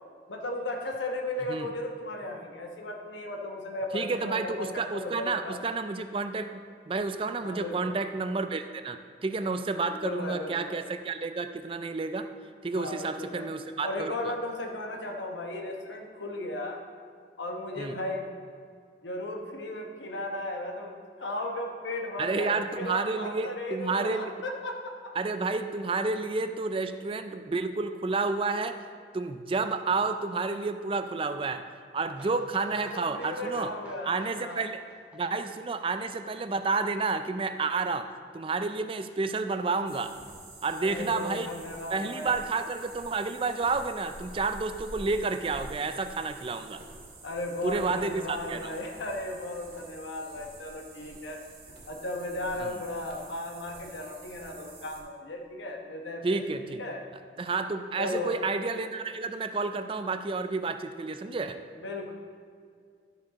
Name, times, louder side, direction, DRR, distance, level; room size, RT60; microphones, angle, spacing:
voice 1, 0.3-5.6 7.4-7.9 9.8-10.7 12.7-13.5 13.8-16.8 17.4-18.3 19.0-25.1 32.6-34.6 40.8-42.4 47.2-51.4 51.9-56.4 56.8-57.0 58.0-58.3 61.8-62.1, left 1 dB, 80° left, 1 dB, 1.1 m, -36 dB
voice 2, 3.9-6.6 6.9-12.3 12.6-14.3 17.8-18.0 22.2-24.3 25.2-28.8 29.1-31.6 31.9-33.7 34.1-34.8 35.1-38.1 38.3-40.2 40.6-41.5 41.9-46.8 47.6-48.7 52.6-52.7 56.2-56.8 57.4-61.6, right 3 dB, 30° right, 9 dB, 0.3 m, -30 dB
sound 1, 32.1-37.7 37.9-38.0 38.3-38.4 38.6-38.7, equal, 5° right, 1.8 m, -54 dB
sound 2, 39.9-55.0, right 2 dB, 60° right, 2.2 m, -48 dB
12.5 x 5.3 x 4.1 m, 2.2 s
head